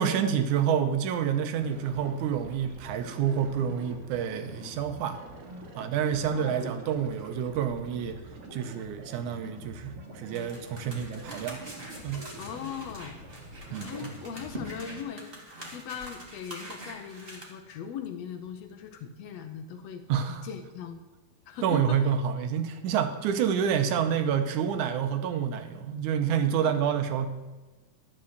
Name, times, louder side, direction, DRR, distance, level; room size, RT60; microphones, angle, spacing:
voice 1, 0.0-5.2 5.8-8.2 8.5-11.6 12.0-12.3 13.7-14.1 20.1-20.5 21.6-27.3, right 8 dB, 75° right, 8 dB, 2.1 m, -28 dB
sound 1, 1.5-15.0, right 1 dB, 50° right, 2.0 m, -45 dB
voice 2, 6.3-6.7 12.4-13.2 13.7-15.3 15.7-21.0 21.5-22.1 26.6-26.8, left 7 dB, 75° left, 7 dB, 1.6 m, -39 dB
sound 2, 10.3-17.4, right 1 dB, 20° right, 1.9 m, -44 dB
12.5 x 5.6 x 7.9 m, 1.2 s
omnidirectional pair, 3.8 m